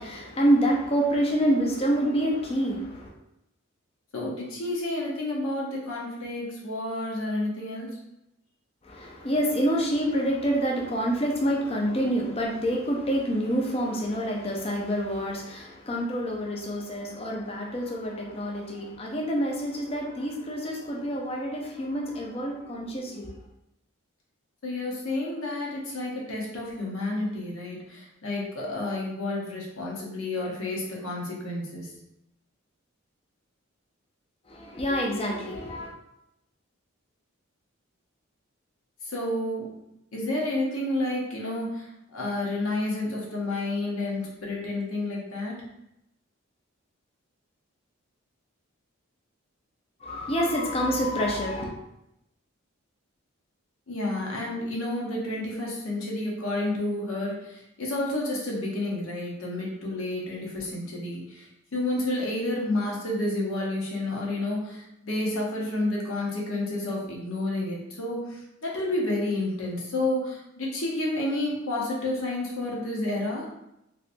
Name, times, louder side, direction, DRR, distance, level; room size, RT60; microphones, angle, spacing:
voice 1, 0.0-3.1 8.8-23.3 34.5-35.9 50.0-51.7, equal, 30° left, -1 dB, 0.5 m, -27 dB
voice 2, 4.1-8.0 24.6-31.9 39.0-39.7 40.1-45.6 53.9-73.5, left 2 dB, 85° left, -3 dB, 1.0 m, -30 dB
3.2 x 2.9 x 2.5 m, 0.85 s
head